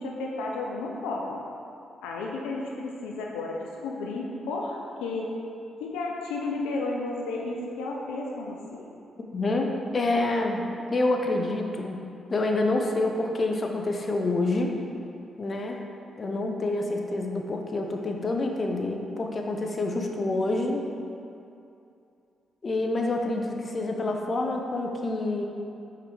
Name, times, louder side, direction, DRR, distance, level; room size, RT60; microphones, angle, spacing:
voice 1, 0.0-1.4 2.0-5.3 5.8-8.9, left 2 dB, 90° left, -1 dB, 0.6 m, -32 dB
voice 2, 9.3-12.0 12.3-14.8 15.4-15.8 16.2-20.8 22.6-25.5, left 2 dB, 45° left, 2 dB, 0.8 m, -27 dB
5.8 x 5.0 x 4.7 m, 2.6 s
supercardioid pair, 55°, 0 cm